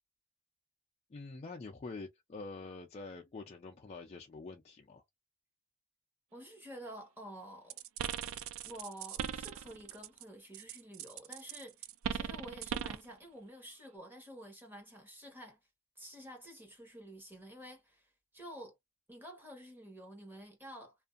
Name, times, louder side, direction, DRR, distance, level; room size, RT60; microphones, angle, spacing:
voice 1, 1.1-5.0, left 3 dB, 30° left, 0.4 m, -46 dB
voice 2, 6.3-7.8 8.6-15.6 16.0-18.8 19.1-20.9, equal, 10° right, 1.1 m, -50 dB
sound 1, 7.7-10.2 10.5-13.1, right 8 dB, 80° right, 0.3 m, -39 dB
2.6 x 2.3 x 2.4 m
head